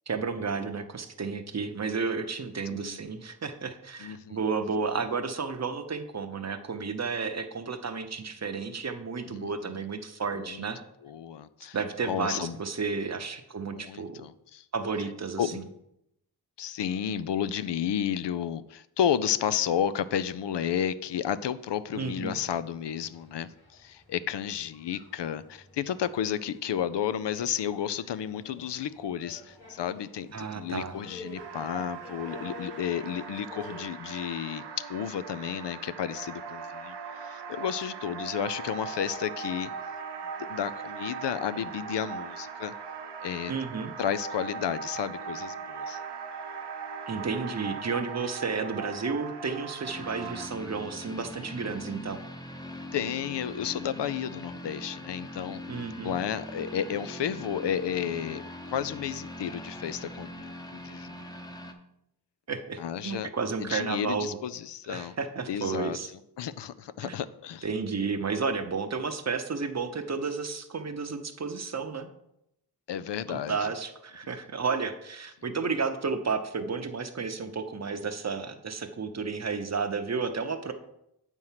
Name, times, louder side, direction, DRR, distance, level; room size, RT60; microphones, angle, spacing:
voice 1, 0.1-10.8 11.7-14.2 14.7-15.7 21.9-22.4 30.3-30.9 43.5-43.9 47.1-52.2 55.7-56.2 62.5-64.4 64.9-66.1 67.0-67.2 67.6-72.1 73.3-80.7, right 5 dB, 40° right, 8 dB, 0.7 m, -32 dB
voice 2, 2.7-3.0 4.0-4.4 9.3-9.8 10.4-10.7 11.0-11.8 12.0-12.6 13.7-14.6 15.4-15.6 16.6-39.7 40.5-42.7 43.2-43.5 44.0-46.0 52.9-55.6 56.0-58.4 58.7-61.3 62.8-63.3 63.6-65.1 65.5-66.0 66.4-67.7 72.9-73.7, left 9 dB, 80° left, 15 dB, 0.5 m, -32 dB
sound 1, 21.6-33.8, left 3 dB, 60° left, 2.3 m, -50 dB
sound 2, 31.3-50.5, right 5 dB, 75° right, 0.8 m, -39 dB
sound 3, 49.9-61.7, left 1 dB, 10° left, 0.8 m, -42 dB
7.8 x 4.6 x 5.7 m, 0.81 s
wide cardioid pair, 85°, 41 cm